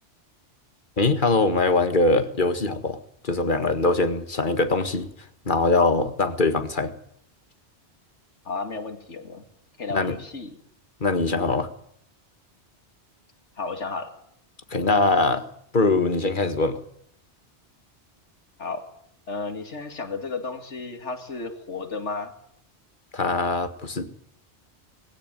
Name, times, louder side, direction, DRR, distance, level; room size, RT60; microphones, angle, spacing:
voice 1, 1.0-3.0 3.2-5.1 5.5-6.9 9.9-10.2 11.0-11.7 14.7-15.5 15.7-16.8 23.1-24.1, left 3 dB, 45° left, 10 dB, 2.0 m, -22 dB
voice 2, 8.4-9.4 9.8-10.6 13.6-14.1 18.6-18.8 19.3-22.3, left 4 dB, 90° left, 7 dB, 2.7 m, -33 dB
20.5 x 17.0 x 9.2 m, 0.70 s
omnidirectional pair, 1.2 m